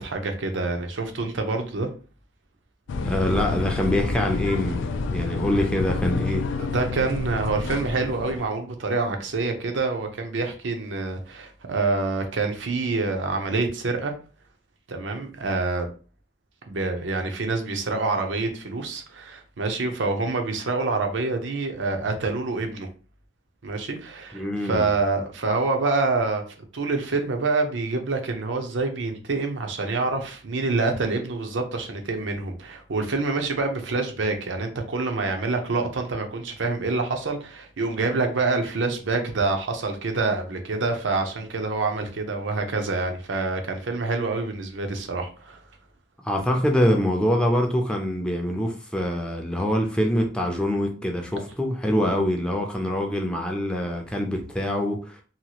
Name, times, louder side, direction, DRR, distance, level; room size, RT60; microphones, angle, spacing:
voice 1, 0.0-1.9 6.6-14.1 14.9-15.9 16.7-22.9 23.6-26.4 26.7-45.6, right 3 dB, 80° right, 0.6 m, -26 dB
sound 1, 2.9-8.5, left 3 dB, 85° left, 0.3 m, -29 dB
voice 2, 3.0-6.5 24.3-24.9 46.2-55.2, left 1 dB, 5° left, 0.4 m, -24 dB
2.8 x 2.3 x 2.9 m
head